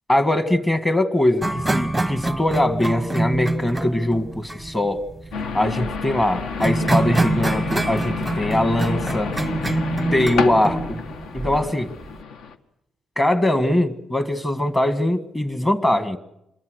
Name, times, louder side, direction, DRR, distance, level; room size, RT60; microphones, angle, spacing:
voice 1, 0.1-5.0 5.5-9.3 10.1-11.0 11.3-11.9 13.2-16.2, left 1 dB, 15° left, 10 dB, 1.7 m, -21 dB
sound 1, 1.4-12.2, right 2 dB, 5° right, 0.9 m, -26 dB
sound 2, 5.3-12.6, left 5 dB, 70° left, 2.0 m, -30 dB
27.0 x 22.0 x 6.5 m, 0.84 s
cardioid pair, 155°, 0 cm